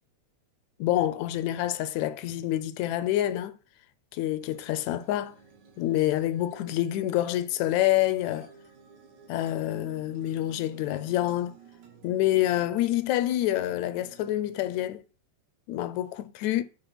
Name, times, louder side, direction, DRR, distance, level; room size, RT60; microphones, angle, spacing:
voice 1, 0.8-3.6 4.1-5.4 5.8-8.5 9.3-11.5 12.0-15.0 15.7-16.6, left 13 dB, 80° left, 1.9 m, -27 dB
sound 1, 4.4-15.0, right 6 dB, 80° right, 3.2 m, -53 dB
8.5 x 3.7 x 5.8 m
omnidirectional pair, 3.3 m